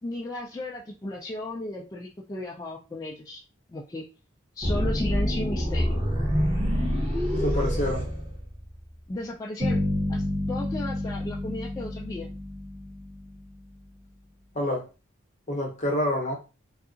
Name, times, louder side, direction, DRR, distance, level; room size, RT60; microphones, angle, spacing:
voice 1, 0.0-3.4 3.7-4.1 4.5-6.0 9.1-9.8 10.1-12.3, left 1 dB, 15° left, 0.3 m, -34 dB
sound 1, 4.6-8.9, equal, 25° right, 0.8 m, -26 dB
voice 2, 7.3-8.1 14.5-14.9 15.5-16.3, left 1 dB, 35° left, 0.7 m, -27 dB
sound 2, 9.6-13.6, left 1 dB, 85° right, 0.9 m, -30 dB
2.7 x 2.4 x 2.4 m
head